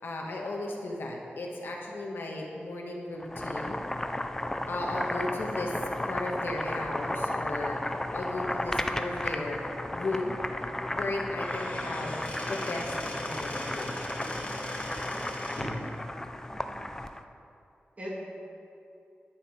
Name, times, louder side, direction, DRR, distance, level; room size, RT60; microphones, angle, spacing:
voice 1, 0.0-3.9 4.7-5.7 6.0-9.6 9.9-10.4 10.9-14.3, left 2 dB, 80° left, -1 dB, 1.5 m, -36 dB
Boiling, 3.2-17.2, left 1 dB, 15° left, 0.5 m, -34 dB
Squeak / Wood, 11.3-15.8, left 1 dB, 35° left, 2.5 m, -39 dB
voice 2, 15.5-15.9 16.5-16.8 18.0-18.2, equal, 40° right, -5 dB, 2.9 m, -41 dB
10.0 x 8.5 x 5.2 m, 2.7 s
wide cardioid pair, 95°, 4 cm